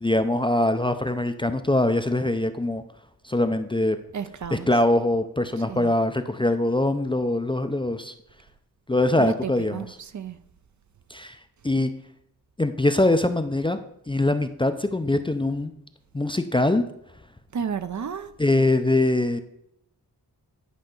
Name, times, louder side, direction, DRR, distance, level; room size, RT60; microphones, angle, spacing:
voice 1, 0.0-2.8 3.2-4.0 4.5-8.1 8.9-10.0 11.1-11.4 11.6-11.9 12.6-13.8 14.1-15.7 16.1-16.8 18.4-19.4, left 2 dB, 15° left, 8 dB, 0.4 m, -23 dB
voice 2, 4.1-4.7 5.7-5.9 9.2-9.9 10.1-10.4 17.5-18.3, right 7 dB, 50° right, 11 dB, 0.6 m, -31 dB
10.5 x 5.2 x 3.8 m, 0.77 s
wide cardioid pair, 80°, 38 cm